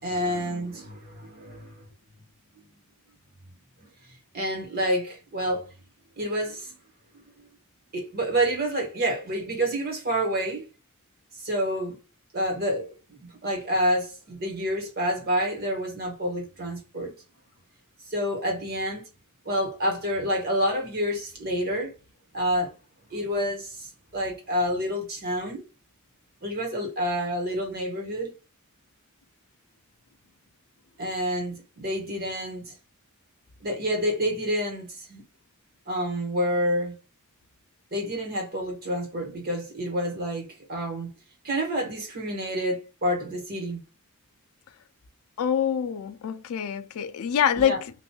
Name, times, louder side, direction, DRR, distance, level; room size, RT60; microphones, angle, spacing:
voice 1, 0.0-1.8 4.3-5.7 6.2-6.7 7.1-7.5 7.9-10.7 11.4-12.0 12.3-17.1 18.1-19.1 19.4-21.9 22.3-22.7 23.1-25.6 26.4-28.3 31.0-32.7 33.6-35.2 35.9-36.9 37.9-41.1 41.4-43.8 47.5-47.8, equal, 45° right, 1.3 m, -28 dB
voice 2, 45.4-47.9, left 8 dB, 75° left, 0.3 m, -25 dB
2.9 x 2.6 x 2.2 m
head